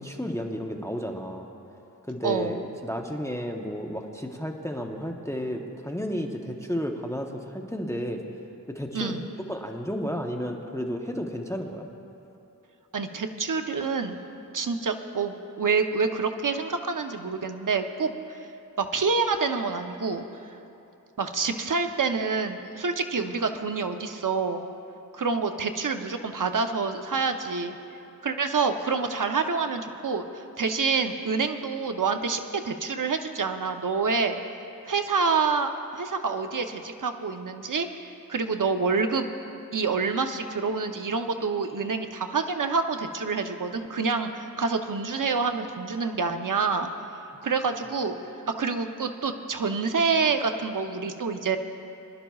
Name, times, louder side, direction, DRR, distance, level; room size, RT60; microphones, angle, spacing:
voice 1, 0.0-1.5 2.1-8.2 8.7-9.1 9.5-11.9, equal, 10° left, 2 dB, 0.9 m, -32 dB
voice 2, 2.2-2.6 8.9-9.3 12.9-14.2 14.5-18.4 18.8-20.2 21.2-24.7 25.1-27.8 28.2-30.2 30.6-34.4 34.9-39.3 39.7-46.9 47.4-48.2 48.5-51.6, right 4 dB, 65° right, 6 dB, 0.7 m, -27 dB
24.0 x 12.0 x 2.4 m, 2.8 s
wide cardioid pair, 65°, 34 cm